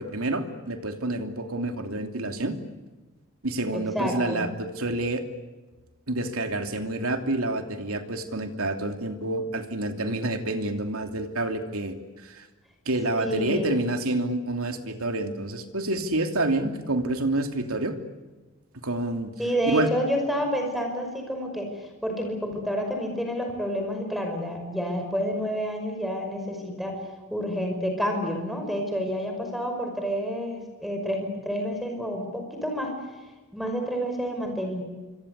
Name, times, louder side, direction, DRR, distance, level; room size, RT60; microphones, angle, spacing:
voice 1, 0.0-2.5 3.4-5.2 6.1-11.9 12.2-12.5 12.9-18.0 18.8-19.3 19.7-19.9, right 2 dB, 85° right, 5 dB, 3.0 m, -28 dB
voice 2, 3.7-4.4 13.2-13.7 19.4-27.0 27.3-32.9 33.5-34.8, equal, ahead, 4 dB, 5.5 m, -29 dB
26.5 x 25.5 x 8.3 m, 1.2 s
head